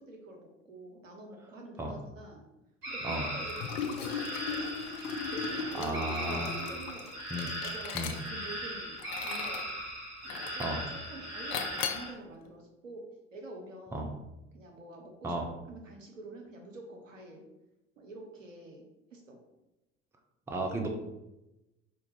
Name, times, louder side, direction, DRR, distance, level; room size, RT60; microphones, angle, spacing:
voice 1, 0.0-2.4 2.9-4.9 5.3-7.1 7.6-9.7 10.2-14.1 14.5-15.3 15.7-17.4 18.0-18.8 19.1-19.4, right 2 dB, 85° right, 1 dB, 0.7 m, -47 dB
sound 1, 2.8-12.1, equal, 60° right, 1.5 m, -38 dB
Liquid, 3.5-8.5 9.0-9.7 10.3-10.8 11.5-12.1, left 7 dB, 50° left, 0.5 m, -38 dB
voice 2, 5.7-6.5 7.3-7.5 7.9-8.1 10.6-10.8 13.9-14.1 15.2-15.5 20.5-20.9, right 1 dB, 5° right, 2 dB, 0.5 m, -34 dB
4.3 x 2.4 x 3.0 m, 0.94 s
figure-of-eight pair, 65°, 38 cm